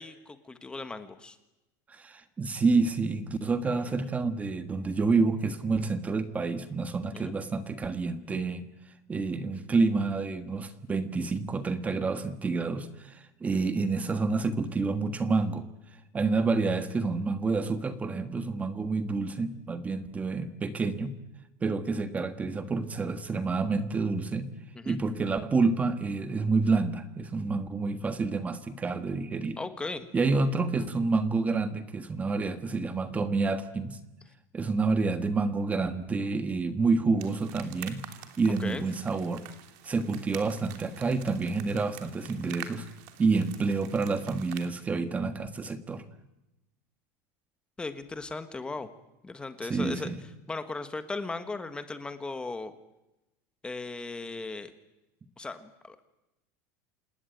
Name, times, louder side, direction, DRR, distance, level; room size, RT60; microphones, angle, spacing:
voice 1, 0.0-1.4 3.7-3.9 7.1-7.4 24.7-25.0 29.6-30.1 38.6-38.8 47.8-48.9 49.2-50.1 50.5-52.7 53.6-54.7 55.4-56.1, left 3 dB, 10° left, 10 dB, 1.4 m, -37 dB
voice 2, 1.9-8.7 9.1-15.7 16.1-21.2 21.6-24.5 24.8-29.6 30.1-34.0 34.5-38.0 38.4-39.4 39.8-42.9 43.2-46.0 49.7-50.2, right 4 dB, 15° right, 10 dB, 1.4 m, -28 dB
sound 1, 37.2-44.7, right 11 dB, 65° right, 3.0 m, -47 dB
27.5 x 19.0 x 9.3 m, 0.96 s
supercardioid pair, 155°, 9 cm